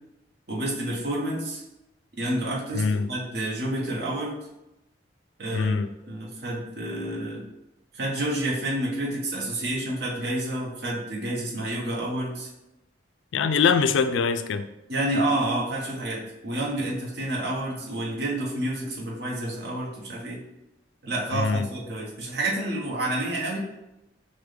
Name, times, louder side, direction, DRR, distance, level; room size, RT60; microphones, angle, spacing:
voice 1, 0.5-1.6 2.2-4.4 5.4-5.7 6.0-7.5 7.9-12.5 14.9-20.4 21.0-23.6, right 1 dB, 60° right, -4 dB, 1.0 m, -29 dB
voice 2, 2.7-3.1 5.5-5.9 13.3-14.7 21.3-21.7, left 5 dB, 90° left, 11 dB, 0.3 m, -23 dB
6.0 x 2.2 x 3.3 m, 0.92 s
head